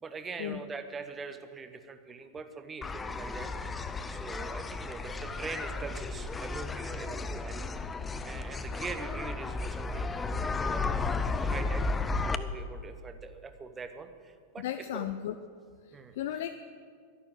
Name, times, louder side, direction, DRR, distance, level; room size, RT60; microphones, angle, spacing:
voice 1, 0.0-3.5 4.1-7.6 8.2-11.8 12.2-15.1 15.9-16.2, right 4 dB, 20° right, 9 dB, 1.0 m, -43 dB
sound 1, 2.8-12.4, left 3 dB, 15° left, 0.6 m, -33 dB
voice 2, 14.6-15.3 15.8-16.5, left 11 dB, 55° left, 9 dB, 0.5 m, -35 dB
12.0 x 11.0 x 8.0 m, 2.1 s
figure-of-eight pair, 90°, 0 cm